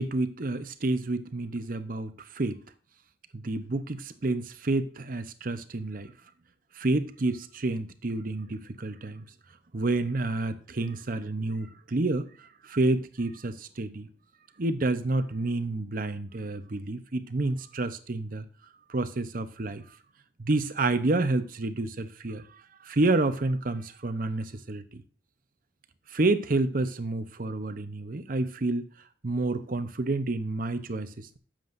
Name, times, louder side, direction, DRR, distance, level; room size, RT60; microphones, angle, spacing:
voice 1, 0.0-2.6 3.3-6.1 6.7-9.2 9.7-14.1 14.6-18.4 18.9-19.8 20.4-25.0 26.1-28.8 29.2-31.4, right 2 dB, 45° right, 10 dB, 0.7 m, -29 dB
15.0 x 7.5 x 2.6 m, 0.42 s
head